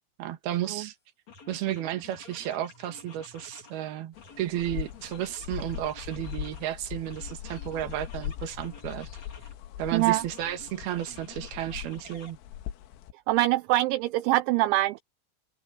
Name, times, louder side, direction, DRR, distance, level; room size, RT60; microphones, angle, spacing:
voice 1, 0.2-0.9 1.5-9.1 9.8-12.4, right 12 dB, 60° right, 3.1 m, -33 dB
sound 1, 0.7-0.9 1.3-3.8 4.2-6.7 7.1-9.6 9.9-12.3, left 4 dB, 35° left, 5.2 m, -50 dB
sound 2, 4.2-13.1, left 11 dB, 80° left, 3.8 m, -40 dB
voice 2, 9.9-10.2 13.3-15.0, right 17 dB, 80° right, 2.8 m, -24 dB
open air
omnidirectional pair, 5.8 m